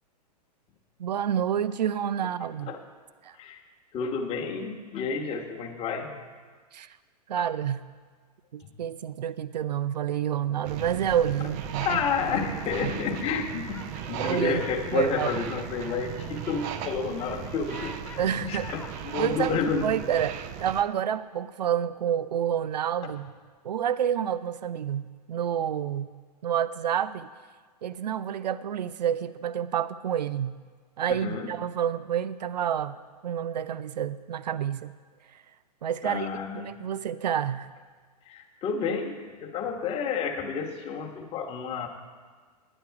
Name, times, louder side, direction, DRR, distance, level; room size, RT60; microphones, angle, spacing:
voice 1, 1.0-2.7 3.2-3.4 6.7-7.0 7.3-7.8 8.5-12.0 12.3-12.6 12.8-12.9 14.2-14.6 14.9-15.3 18.2-18.8 19.2-23.3 23.6-26.1 26.4-27.3 27.8-30.6 31.0-33.0 33.2-34.9 35.3-35.4 35.8-36.3 36.5-37.7, right 9 dB, 80° right, 15 dB, 0.5 m, -29 dB
voice 2, 3.9-6.1 7.4-7.5 11.8-13.8 14.1-19.8 31.1-31.5 36.0-36.8 38.3-41.9, left 6 dB, 30° left, 1 dB, 1.3 m, -30 dB
sound 1, 10.6-20.8, right 9 dB, 35° right, 0.6 m, -37 dB
sound 2, 11.3-20.7, left 4 dB, 10° left, 1.3 m, -49 dB
10.0 x 9.6 x 4.7 m, 1.5 s
hypercardioid pair, 115°, 21 cm